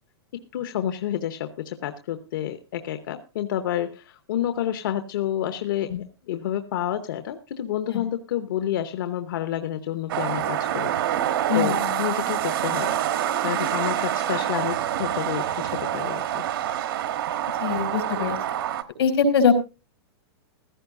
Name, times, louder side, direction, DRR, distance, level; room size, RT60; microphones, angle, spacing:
voice 1, 0.5-5.9 6.3-10.9 11.5-12.9 13.4-16.4, left 11 dB, 55° left, 9 dB, 0.9 m, -29 dB
sound 1, 10.1-18.8, right 11 dB, 60° right, 1.2 m, -26 dB
voice 2, 17.6-18.4 19.0-19.5, left 6 dB, 85° left, 6 dB, 4.0 m, -22 dB
15.5 x 14.0 x 2.6 m, 0.29 s
supercardioid pair, 175°, 13 cm